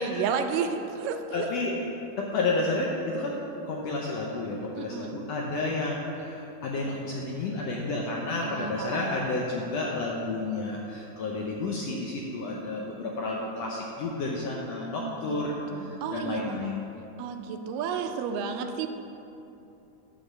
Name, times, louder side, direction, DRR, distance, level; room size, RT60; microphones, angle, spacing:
voice 1, 0.0-1.5 4.8-5.2 8.4-9.7 15.0-16.8 17.2-18.9, right 6 dB, 85° right, 6 dB, 2.2 m, -32 dB
voice 2, 1.3-1.8 2.2-16.8, left 2 dB, 80° left, -2 dB, 1.4 m, -31 dB
10.0 x 4.1 x 7.1 m, 2.9 s
omnidirectional pair, 3.8 m